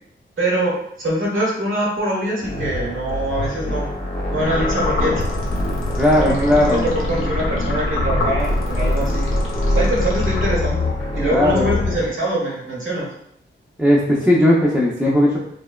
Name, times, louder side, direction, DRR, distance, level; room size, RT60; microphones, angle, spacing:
voice 1, 0.4-3.8 4.3-5.3 6.1-9.3 9.7-10.9 11.1-13.1, right 1 dB, 75° right, -5 dB, 0.9 m, -23 dB
sound 1, 2.4-12.1, left 1 dB, 30° left, 0.7 m, -25 dB
sound 2, 4.4-10.9, left 2 dB, 85° left, 0.6 m, -25 dB
voice 2, 6.0-6.9 11.3-11.7 13.8-15.4, left 1 dB, 5° right, -7 dB, 0.4 m, -16 dB
2.8 x 2.1 x 2.2 m, 0.70 s
wide cardioid pair, 100°, 21 cm